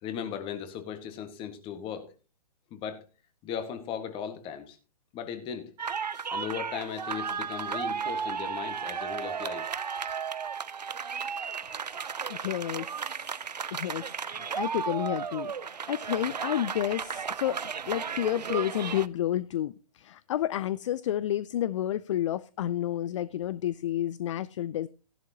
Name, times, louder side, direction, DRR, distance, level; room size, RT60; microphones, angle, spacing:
voice 1, 0.0-2.1 2.7-3.0 3.4-4.8 5.1-5.7 6.3-9.7, left 8 dB, 25° left, 1.7 m, -37 dB
sound 1, 5.8-19.1, right 6 dB, 85° right, 0.6 m, -34 dB
voice 2, 12.3-13.1 13.7-17.6 17.9-24.9, left 12 dB, 50° left, 0.4 m, -30 dB
14.5 x 11.0 x 2.9 m
figure-of-eight pair, 125°, 21 cm